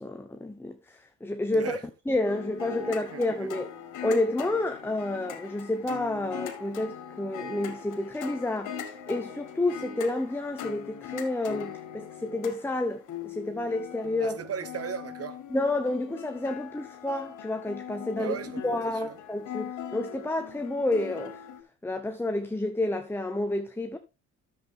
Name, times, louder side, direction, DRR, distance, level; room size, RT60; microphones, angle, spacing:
voice 1, 0.0-1.8 2.1-3.7 4.0-14.4 15.5-18.3 18.6-21.4 21.8-24.0, left 2 dB, 5° left, 1.0 m, -30 dB
voice 2, 1.5-1.8 2.6-3.5 14.2-15.4 18.2-19.2, right 7 dB, 50° right, 1.2 m, -37 dB
sound 1, 2.3-21.6, left 8 dB, 80° left, 2.2 m, -41 dB
10.0 x 7.7 x 3.7 m
cardioid pair, 90°, 30 cm